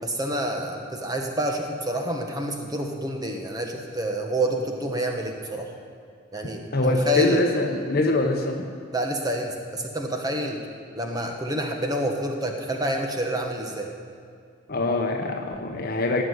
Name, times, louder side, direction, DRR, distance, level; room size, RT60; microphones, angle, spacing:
voice 1, 0.0-5.7 6.3-7.4 8.9-10.7 10.9-13.9, right 1 dB, 20° right, 2 dB, 1.3 m, -28 dB
voice 2, 6.7-8.7 14.7-16.2, left 2 dB, 45° left, 2 dB, 0.9 m, -23 dB
16.5 x 6.3 x 9.6 m, 2.2 s
head